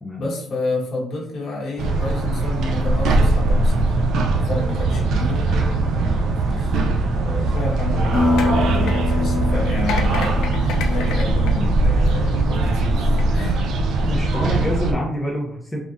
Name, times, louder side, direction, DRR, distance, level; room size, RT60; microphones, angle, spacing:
voice 1, 0.2-6.7 7.1-13.6, left 2 dB, 60° left, -3 dB, 1.0 m, -30 dB
sound 1, 1.8-14.9, right 2 dB, 80° right, 0.4 m, -20 dB
sound 2, 7.5-12.4 13.0-13.2, left 5 dB, 85° left, 0.4 m, -33 dB
sound 3, 8.1-12.4, left 2 dB, 35° left, 0.8 m, -25 dB
voice 2, 14.0-15.8, equal, 15° left, -2 dB, 0.6 m, -26 dB
3.4 x 2.5 x 2.5 m, 0.70 s
cardioid pair, 90°, 0 cm